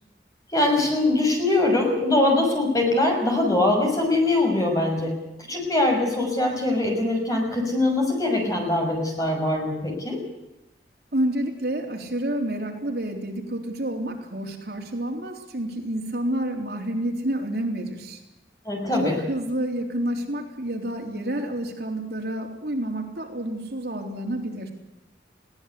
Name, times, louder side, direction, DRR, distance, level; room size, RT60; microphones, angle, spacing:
voice 1, 0.5-5.2 5.5-10.2 18.6-19.2, left 2 dB, 20° left, 1 dB, 6.2 m, -22 dB
voice 2, 11.1-18.2 19.0-24.7, right 1 dB, 65° right, 1 dB, 3.7 m, -29 dB
21.5 x 17.0 x 8.4 m, 0.93 s
head